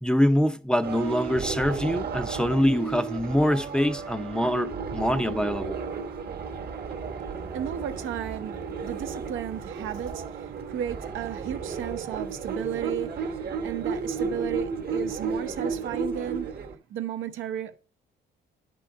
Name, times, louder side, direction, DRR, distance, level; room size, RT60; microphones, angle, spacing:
voice 1, 0.0-5.8, equal, 5° left, 0.5 m, -24 dB
sound 1, 0.8-16.8, right 5 dB, 50° right, 1.1 m, -33 dB
voice 2, 6.7-17.8, right 9 dB, 80° right, 0.7 m, -34 dB
10.0 x 3.9 x 4.5 m
cardioid pair, 90°, 20 cm